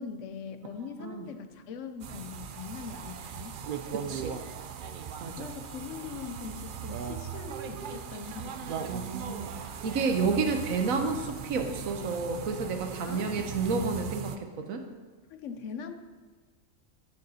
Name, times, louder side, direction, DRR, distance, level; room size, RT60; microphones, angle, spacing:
voice 1, 0.0-3.6 5.4-9.1 13.0-13.5 15.3-15.9, left 6 dB, 70° left, 9 dB, 0.9 m, -42 dB
sound 1, 2.0-14.4, right 7 dB, 65° right, 0.5 m, -39 dB
voice 2, 3.9-4.3 5.2-5.5 8.9-9.5 9.8-14.8, right 4 dB, 85° right, 5 dB, 1.2 m, -30 dB
14.0 x 6.6 x 2.8 m, 1.4 s
omnidirectional pair, 1.4 m